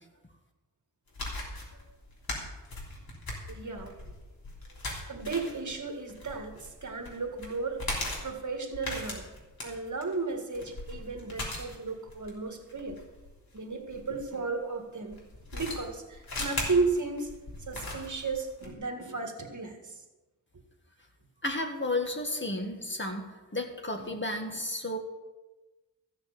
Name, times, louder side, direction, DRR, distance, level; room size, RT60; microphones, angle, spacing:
sound 1, 1.1-14.3 15.1-18.7, left 2 dB, 90° left, 3.4 m, -39 dB
voice 1, 3.5-4.0 5.1-7.9 8.2-9.2 9.6-13.0 13.5-15.2 15.5-17.4 17.7-20.0 24.0-24.1, right 4 dB, 55° right, 4 dB, 1.9 m, -34 dB
voice 2, 21.4-25.0, left 2 dB, 35° left, 3 dB, 1.9 m, -33 dB
14.5 x 6.5 x 8.2 m, 1.1 s
wide cardioid pair, 80°, 35 cm